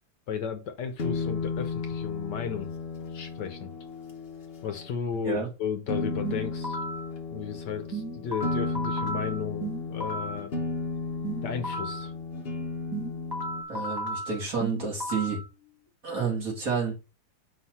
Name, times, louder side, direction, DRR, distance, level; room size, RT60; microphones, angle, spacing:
voice 1, 0.3-2.7 3.1-3.7 4.6-6.8 7.3-10.6 11.4-12.1, left 7 dB, 65° left, 1.3 m, -34 dB
sound 1, 1.0-4.9 5.9-13.6, left 4 dB, 40° left, 0.9 m, -34 dB
sound 2, 6.2-7.1 7.9-10.5 11.2-12.1 12.9-15.5, right 1 dB, 15° right, 1.1 m, -34 dB
voice 2, 13.7-15.4 16.0-16.9, right 5 dB, 45° right, 2.7 m, -30 dB
5.6 x 3.1 x 5.5 m
omnidirectional pair, 2.1 m